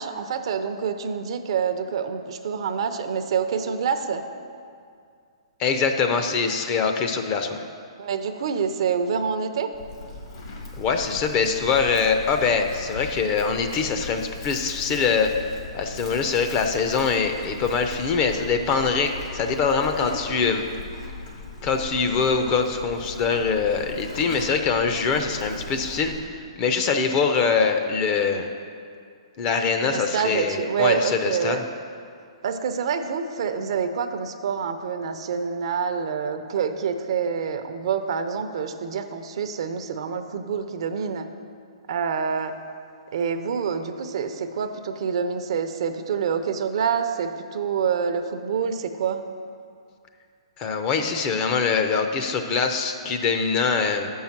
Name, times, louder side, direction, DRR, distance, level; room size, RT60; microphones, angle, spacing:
voice 1, 0.0-4.2 8.0-9.7 29.9-31.6 32.4-41.3 41.9-42.5 43.1-49.2, right 6 dB, 60° right, 8 dB, 0.6 m, -27 dB
voice 2, 5.6-7.6 10.8-15.3 15.7-20.6 21.6-28.5 29.4-31.6 50.6-54.1, left 5 dB, 35° left, 6 dB, 0.6 m, -23 dB
Livestock farm animals working animals, 9.7-26.2, left 3 dB, 60° left, 1.7 m, -38 dB
7.1 x 5.5 x 5.9 m, 2.3 s
hypercardioid pair, 135°, 3 cm